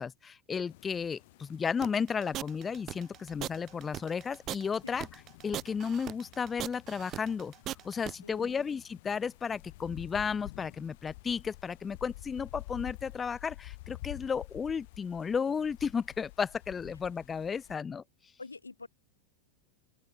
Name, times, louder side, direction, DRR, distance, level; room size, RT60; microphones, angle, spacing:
voice 1, 0.0-5.1 5.4-7.5 7.8-18.0, left 6 dB, 20° left, 0.5 m, -33 dB
sound 1, 0.7-17.8, left 21 dB, 50° left, 2.6 m, -50 dB
sound 2, 1.8-8.1, right 13 dB, 30° right, 0.7 m, -39 dB
voice 2, 8.2-8.7 18.4-18.9, left 3 dB, 80° left, 2.7 m, -46 dB
open air
figure-of-eight pair, 90°, 0 cm